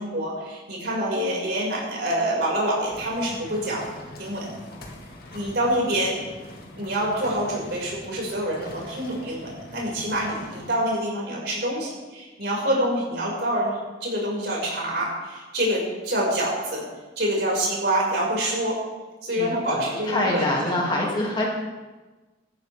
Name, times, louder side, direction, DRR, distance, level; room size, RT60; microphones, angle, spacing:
voice 1, 0.0-3.9 4.2-4.5 5.3-6.2 6.8-16.8 17.2-18.8 19.2-20.7, right 1 dB, 55° right, -3 dB, 5.6 m, -26 dB
sound 1, 2.9-10.7, left 1 dB, 50° left, 2.0 m, -43 dB
voice 2, 19.4-21.5, left 1 dB, 25° left, -2 dB, 2.4 m, -25 dB
16.5 x 14.5 x 3.5 m, 1.2 s
head